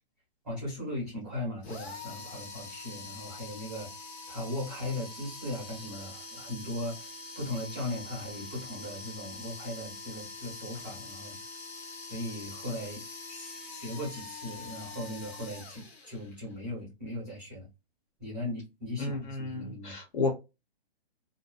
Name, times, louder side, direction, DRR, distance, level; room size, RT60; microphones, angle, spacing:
voice 1, 0.4-11.4 12.1-13.0 13.3-17.7 18.2-19.9, left 1 dB, 5° right, 0.7 m, -38 dB
sound 1, 1.6-16.5, left 3 dB, 85° left, 1.1 m, -44 dB
voice 2, 19.0-20.3, left 3 dB, 55° left, 0.8 m, -32 dB
2.6 x 2.0 x 2.3 m
hypercardioid pair, 175°, 31 cm